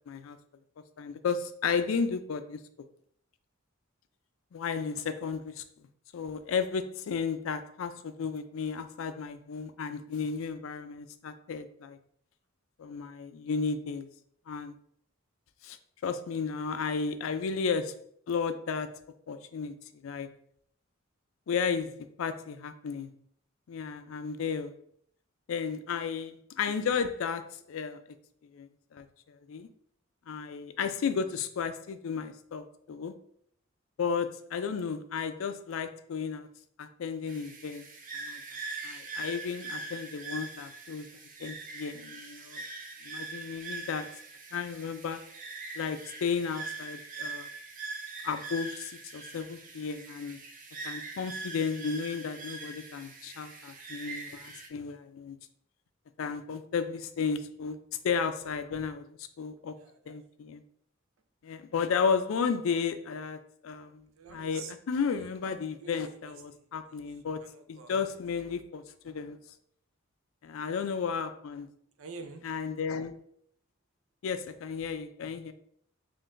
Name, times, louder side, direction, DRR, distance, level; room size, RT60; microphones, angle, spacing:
voice 1, 0.1-0.4 1.0-2.6 4.5-5.6 6.1-12.0 12.8-14.1 14.5-14.7 15.6-15.8 16.0-18.0 18.3-19.0 19.3-20.3 21.5-23.1 23.7-24.7 25.5-28.0 28.5-29.7 30.3-33.1 34.0-36.5 36.8-37.8 38.2-38.4 38.8-41.1 41.4-42.6 43.1-44.1 44.5-45.3 45.7-47.5 48.2-50.4 50.8-55.4 56.2-59.7 60.1-60.6 61.4-69.4 70.4-71.7 72.4-73.2 74.2-75.5, left 6 dB, 80° left, 10 dB, 0.4 m, -33 dB
sound 1, 37.3-54.7, right 3 dB, 40° right, 0.6 m, -42 dB
voice 2, 59.8-60.2 64.2-64.7 65.1-65.3 65.8-67.0 67.4-68.2 72.0-72.4, right 4 dB, 90° right, 7 dB, 0.5 m, -48 dB
5.6 x 2.5 x 2.5 m, 0.64 s
head